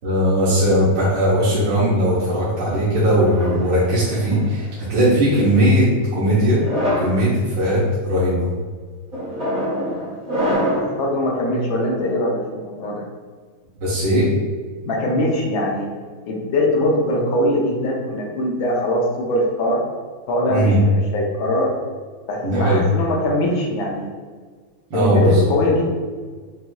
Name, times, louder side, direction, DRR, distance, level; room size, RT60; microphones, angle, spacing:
voice 1, 0.0-6.6 7.0-8.5 13.8-14.3 20.5-20.8 22.4-22.8 24.9-25.4, equal, 65° right, -10 dB, 1.6 m, -18 dB
sound 1, 3.1-4.5 5.3-5.7 6.5-7.2 7.8-8.2 9.1-11.0, equal, 30° right, 1.0 m, -25 dB
voice 2, 10.8-13.0 14.8-15.9 16.2-19.8 20.3-21.7 22.3-24.1 24.9-25.8, left 1 dB, 75° left, -2 dB, 1.5 m, -21 dB
6.0 x 2.6 x 2.2 m, 1.5 s
omnidirectional pair, 2.2 m